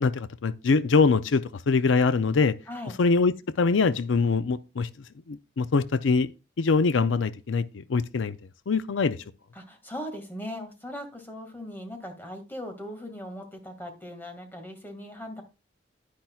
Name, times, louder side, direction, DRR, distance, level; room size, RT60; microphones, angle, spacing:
voice 1, 0.0-2.5 3.0-4.9 5.3-6.3 6.6-8.4 8.7-9.2, left 4 dB, 90° left, 0.5 m, -23 dB
voice 2, 9.5-15.4, equal, 10° left, 1.9 m, -39 dB
10.5 x 9.9 x 2.3 m
head